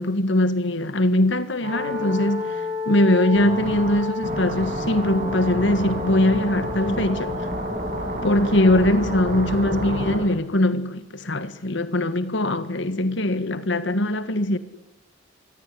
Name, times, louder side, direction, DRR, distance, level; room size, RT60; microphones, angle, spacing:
voice 1, 0.0-2.5 2.8-7.4 8.2-14.6, left 1 dB, 65° left, 1.7 m, -21 dB
sound 1, 1.6-10.2, left 1 dB, 40° right, 7.0 m, -29 dB
25.0 x 18.0 x 10.0 m
head